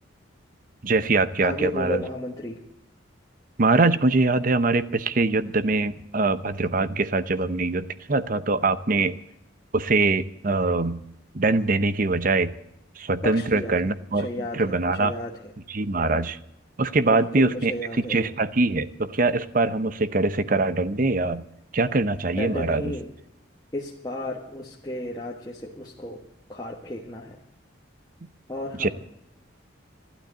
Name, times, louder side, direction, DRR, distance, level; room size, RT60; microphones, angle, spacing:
voice 1, 0.8-2.0 3.6-9.2 9.7-11.0 11.3-12.6 13.0-15.1 15.7-16.4 16.8-17.7 18.1-21.4 21.7-23.0 28.7-28.9, right 3 dB, 40° right, 14 dB, 0.7 m, -23 dB
voice 2, 1.4-2.6 13.2-13.7 14.2-14.6 15.0-15.3 17.1-18.3 22.4-23.1 23.7-26.2 26.5-27.4 28.5-28.9, left 1 dB, 20° left, -2 dB, 1.3 m, -33 dB
13.0 x 12.0 x 8.0 m, 0.80 s
head